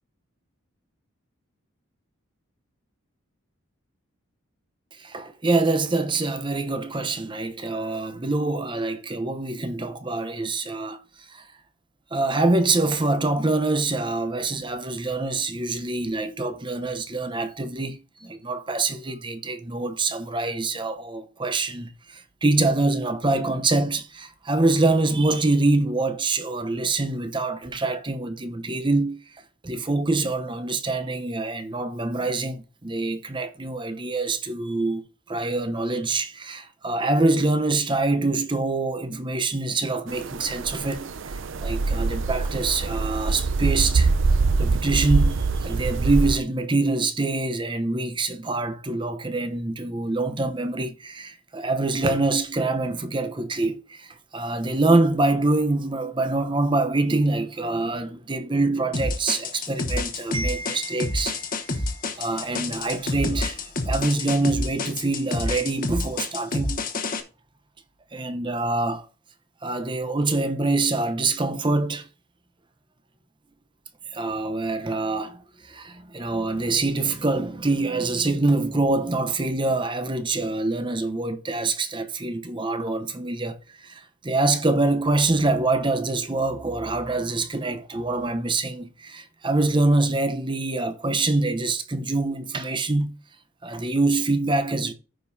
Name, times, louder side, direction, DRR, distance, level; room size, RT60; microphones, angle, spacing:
voice 1, 5.0-11.0 11.3-11.5 12.1-29.2 29.6-44.1 44.6-66.8 68.1-69.1 69.6-72.1 74.1-93.2 93.6-94.9, right 2 dB, 25° right, 0.8 m, -25 dB
sound 1, 40.1-46.4, right 4 dB, 60° right, 0.5 m, -24 dB
sound 2, 58.9-67.2, left 2 dB, 40° left, 1.1 m, -28 dB
14.0 x 5.4 x 2.7 m
head